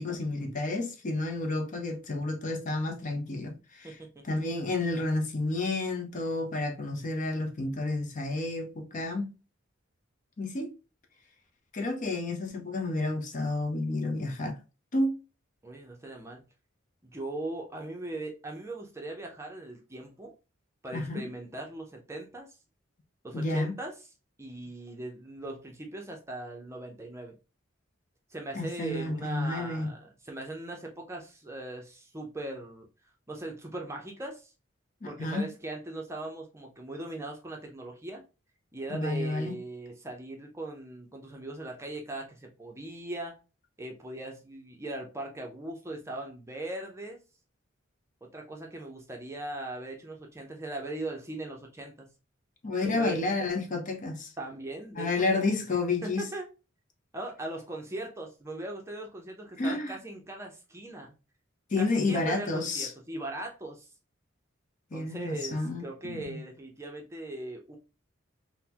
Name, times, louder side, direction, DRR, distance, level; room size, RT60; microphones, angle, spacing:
voice 1, 0.0-4.0 4.2-9.3 10.4-10.7 11.7-14.6 14.9-15.2 20.9-21.3 23.3-23.7 28.5-29.9 35.2-35.5 38.9-39.6 52.6-54.3 55.0-56.3 59.6-60.0 61.7-62.9 64.9-66.4, left 2 dB, 40° left, 0.6 m, -30 dB
voice 2, 3.8-4.3 15.6-16.4 17.0-20.3 20.8-22.5 23.2-23.9 24.4-27.4 28.3-32.9 33.3-34.5 35.0-38.2 38.7-43.3 43.8-47.2 48.2-52.1 52.8-53.2 54.4-55.6 56.0-56.5 57.1-61.1 61.8-63.9 64.9-67.8, right 2 dB, 15° right, 0.6 m, -39 dB
3.8 x 2.1 x 2.8 m
head